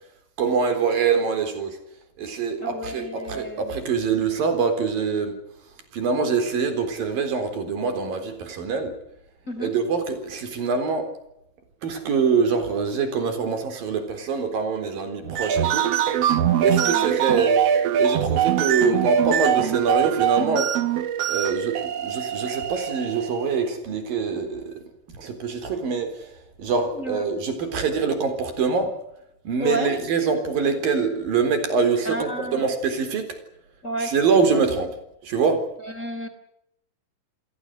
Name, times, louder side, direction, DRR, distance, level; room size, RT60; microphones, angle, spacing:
voice 1, 0.4-1.8 2.2-5.4 5.9-8.9 9.6-11.1 11.8-15.9 16.6-17.6 18.0-20.7 21.3-24.8 25.1-28.9 29.5-33.4 34.0-34.9 35.2-35.7, right 5 dB, 85° right, 8 dB, 5.7 m, -24 dB
voice 2, 2.6-3.6 9.5-9.7 16.7-17.1 26.9-27.2 29.6-29.9 32.0-32.6 33.8-34.1 34.5-34.6 35.8-36.3, right 1 dB, 20° left, 9 dB, 3.1 m, -30 dB
sound 1, 15.2-23.5, right 9 dB, 60° right, 1.8 m, -23 dB
29.0 x 21.0 x 6.7 m, 0.80 s
omnidirectional pair, 4.0 m